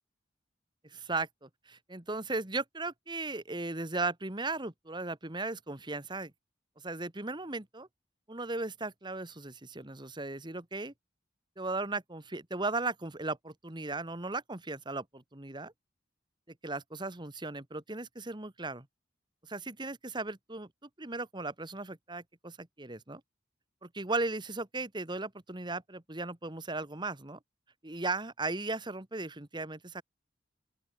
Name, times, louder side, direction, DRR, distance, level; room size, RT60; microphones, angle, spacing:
voice 1, 0.8-6.3 6.8-7.9 8.3-10.9 11.6-15.7 16.6-18.9 19.4-23.2 23.8-27.4 27.8-30.0, right 3 dB, 25° right, 1.7 m, -37 dB
open air
head